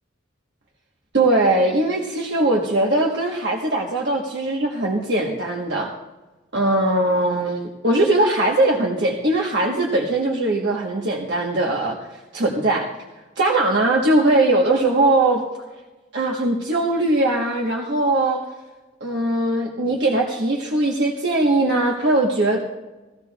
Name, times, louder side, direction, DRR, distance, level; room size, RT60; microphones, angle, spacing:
voice 1, 1.1-5.9 6.5-12.9 13.4-15.5 16.1-18.4 19.0-22.6, right 2 dB, 60° right, -1 dB, 1.2 m, -20 dB
18.0 x 15.0 x 2.4 m, 1.1 s
head